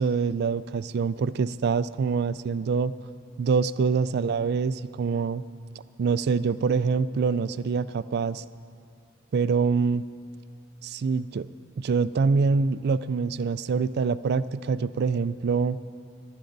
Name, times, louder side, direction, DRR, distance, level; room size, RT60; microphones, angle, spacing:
voice 1, 0.0-2.9 3.4-5.4 6.0-8.4 9.3-10.0 10.8-11.5 11.8-15.8, right 5 dB, 55° right, 15 dB, 0.3 m, -25 dB
21.5 x 11.5 x 4.0 m, 2.4 s
head